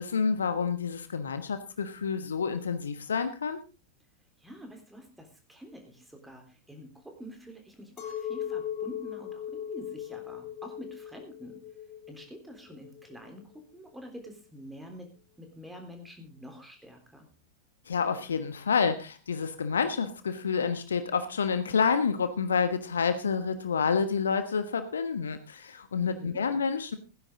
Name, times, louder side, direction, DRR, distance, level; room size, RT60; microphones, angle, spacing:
voice 1, 0.0-3.6 17.9-27.0, left 5 dB, 70° left, 10 dB, 1.3 m, -28 dB
voice 2, 4.4-11.6 12.1-15.1 15.4-17.3 25.9-26.4, equal, 5° right, 4 dB, 3.7 m, -47 dB
Chink clink, 8.0-13.4, left 10 dB, 40° left, 2.5 m, -38 dB
17.0 x 10.5 x 3.8 m, 0.31 s
figure-of-eight pair, 90°, 0 cm